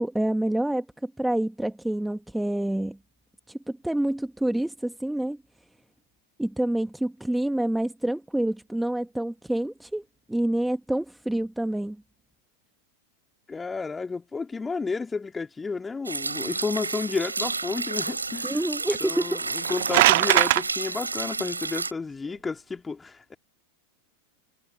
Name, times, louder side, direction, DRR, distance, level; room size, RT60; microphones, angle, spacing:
voice 1, 0.0-3.0 3.5-5.4 6.4-10.0 10.3-12.0 18.4-19.7, right 1 dB, 5° right, 2.1 m, -27 dB
voice 2, 13.5-18.6 19.0-23.3, left 4 dB, 15° left, 3.9 m, -31 dB
sound 1, 16.0-21.9, right 3 dB, 80° right, 4.8 m, -31 dB
sound 2, 19.5-20.6, right 17 dB, 55° right, 0.7 m, -19 dB
figure-of-eight pair, 90°, 0 cm